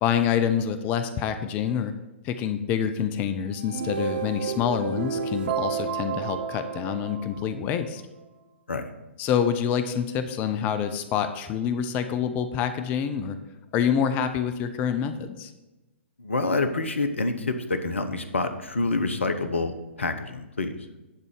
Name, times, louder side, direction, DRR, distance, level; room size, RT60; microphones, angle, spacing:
voice 1, 0.0-1.9 2.2-8.0 9.2-13.4 13.7-15.5, left 8 dB, 25° left, 9 dB, 0.5 m, -26 dB
sound 1, 3.5-7.8, right 6 dB, 45° right, 0.7 m, -31 dB
voice 2, 16.2-20.7, left 3 dB, 70° left, 9 dB, 0.9 m, -27 dB
10.5 x 4.0 x 6.5 m, 1.1 s
figure-of-eight pair, 120°, 7 cm